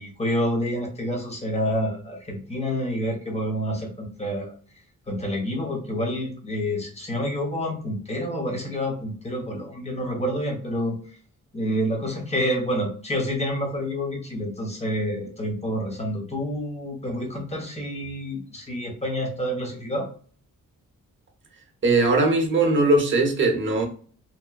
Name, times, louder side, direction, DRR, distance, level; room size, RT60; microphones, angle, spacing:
voice 1, 0.0-4.5 5.1-11.0 11.5-20.1, equal, 20° left, 0.8 m, -28 dB
voice 2, 21.8-23.9, right 2 dB, 35° right, 0.8 m, -20 dB
2.9 x 2.2 x 2.2 m
cardioid pair, 105°, 33 cm